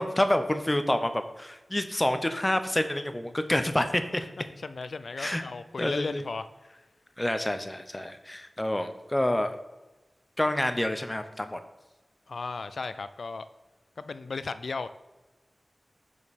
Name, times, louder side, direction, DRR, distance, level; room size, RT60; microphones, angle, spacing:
voice 1, 0.0-4.2 5.2-5.4 5.8-6.2 7.2-9.5 10.4-11.6, left 1 dB, 20° left, 9 dB, 0.7 m, -28 dB
voice 2, 4.4-6.4 12.3-13.4 14.0-14.9, left 4 dB, 80° left, 12 dB, 0.4 m, -35 dB
6.7 x 5.2 x 5.2 m, 1.1 s
wide cardioid pair, 80°, 0 cm